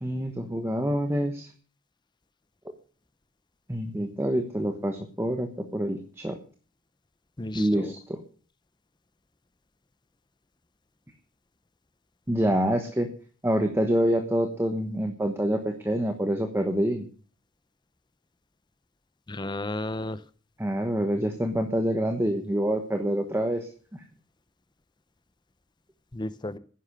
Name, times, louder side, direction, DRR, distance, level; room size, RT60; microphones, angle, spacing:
voice 1, 0.0-1.5 3.7-6.4 7.5-8.2 12.3-13.1 13.4-17.1 20.6-24.0, equal, 10° right, 5 dB, 1.2 m, -26 dB
voice 2, 7.4-7.9 19.3-20.2 26.1-26.6, left 2 dB, 20° left, 13 dB, 0.7 m, -33 dB
11.5 x 10.0 x 6.4 m, 0.41 s
head